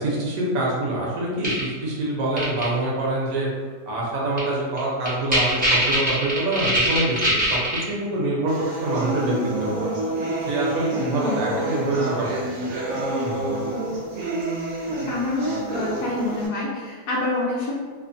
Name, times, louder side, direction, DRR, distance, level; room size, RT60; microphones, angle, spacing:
voice 1, 0.0-3.5 3.9-7.6 7.9-8.5 8.8-9.3 9.6-10.0 10.4-12.3 12.6-12.7 13.2-13.4, right 2 dB, 65° right, -4 dB, 1.1 m, -25 dB
sound 1, 1.4-1.6 2.4-2.6 4.4-4.5 4.8-4.9 5.1-7.8, right 1 dB, 15° right, 0.3 m, -21 dB
sound 2, 8.5-16.5, right 1 dB, 85° right, 0.6 m, -28 dB
voice 2, 11.2-11.7 15.1-17.7, left 2 dB, 70° left, -8 dB, 0.9 m, -27 dB
3.0 x 2.1 x 2.5 m, 1.5 s
omnidirectional pair, 1.8 m